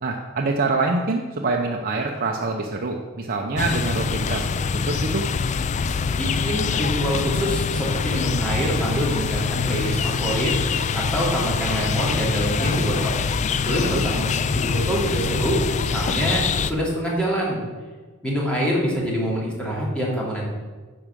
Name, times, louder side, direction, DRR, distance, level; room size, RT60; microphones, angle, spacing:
voice 1, 0.0-4.5 4.7-5.2 13.8-14.0, right 3 dB, 40° right, 1 dB, 0.8 m, -25 dB
sound 1, 3.6-16.7, left 5 dB, 35° left, 0.3 m, -24 dB
voice 2, 6.0-10.6 10.9-13.2 13.6-17.6 18.2-20.4, equal, 5° left, -5 dB, 2.8 m, -25 dB
10.5 x 4.7 x 7.4 m, 1.4 s
head